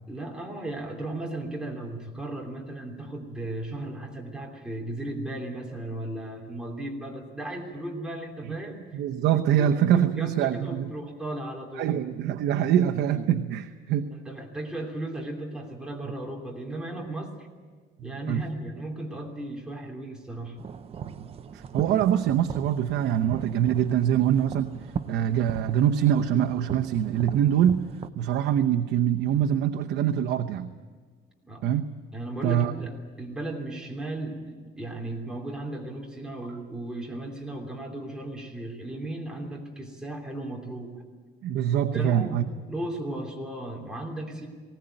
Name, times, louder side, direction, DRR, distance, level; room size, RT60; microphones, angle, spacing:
voice 1, 0.1-9.0 9.6-11.9 14.1-17.3 18.0-20.6 31.4-31.7 32.1-41.0 41.8-44.5, right 1 dB, 5° right, -1 dB, 3.1 m, -36 dB
voice 2, 8.9-10.9 11.8-14.1 18.0-18.4 21.0-21.3 21.5-24.7 25.1-27.8 28.2-30.7 31.6-31.9 32.4-32.7 41.4-42.4, right 10 dB, 80° right, 5 dB, 0.9 m, -24 dB
sound 1, 20.6-28.1, right 7 dB, 35° right, 0.7 m, -38 dB
20.0 x 18.0 x 9.1 m, 1.5 s
cardioid pair, 160°, 18 cm